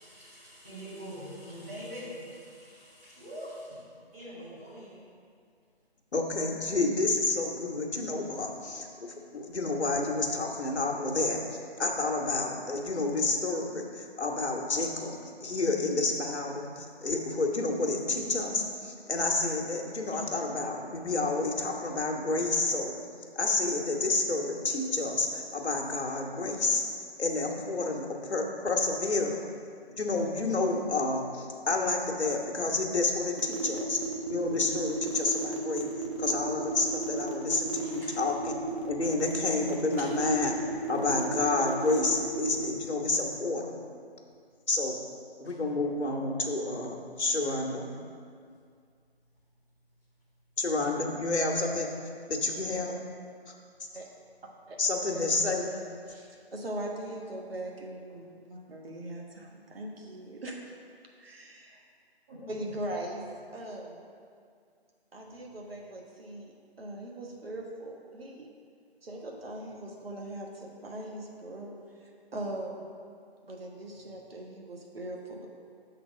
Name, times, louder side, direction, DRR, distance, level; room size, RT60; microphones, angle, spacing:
voice 1, 0.0-3.8 4.1-5.0 37.8-38.2 40.0-40.1 45.4-45.6 62.3-62.6, equal, 15° right, -11 dB, 2.0 m, -44 dB
voice 2, 6.1-11.4 11.8-22.9 23.4-26.8 27.2-29.4 30.0-34.0 34.3-35.9 36.2-38.5 38.8-40.6 40.9-43.8 44.7-45.0 45.4-47.9 50.6-51.9 52.3-53.0 54.8-55.7, left 3 dB, 90° left, 0 dB, 1.3 m, -29 dB
sound 1, 33.4-42.7, right 5 dB, 30° right, 0.6 m, -35 dB
voice 3, 55.1-60.6 61.2-61.8 62.5-63.2 63.5-64.0 65.1-68.5 69.0-71.7 72.0-72.9 73.4-75.5, right 1 dB, 65° right, 0 dB, 1.4 m, -40 dB
7.2 x 4.0 x 6.4 m, 2.2 s
figure-of-eight pair, 165°, 32 cm